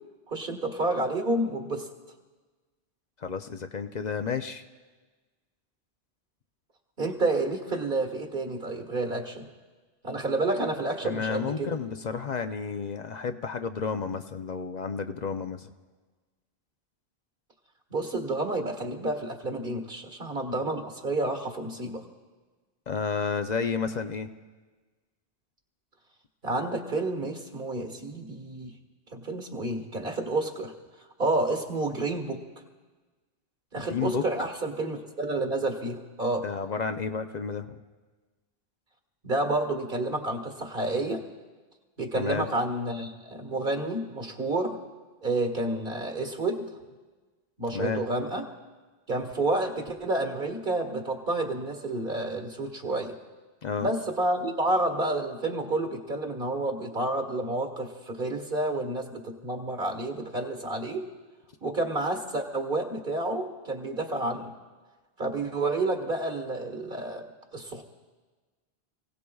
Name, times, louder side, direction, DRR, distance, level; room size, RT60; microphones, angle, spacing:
voice 1, 0.3-1.9 7.0-9.5 10.0-11.7 17.9-22.0 26.4-28.7 29.1-30.7 31.2-32.4 33.7-36.5 39.2-41.2 42.0-44.8 45.2-46.7 47.6-48.5 49.1-53.1 53.8-61.0 61.6-64.5 65.2-67.2 67.5-67.8, right 2 dB, 55° right, 3 dB, 1.9 m, -29 dB
voice 2, 3.2-4.6 11.0-15.7 22.9-24.3 33.8-34.2 36.4-37.8 42.2-42.5 47.7-48.1 53.6-53.9, left 6 dB, 45° left, 8 dB, 0.7 m, -31 dB
28.5 x 17.5 x 2.3 m, 1.3 s
omnidirectional pair, 1.1 m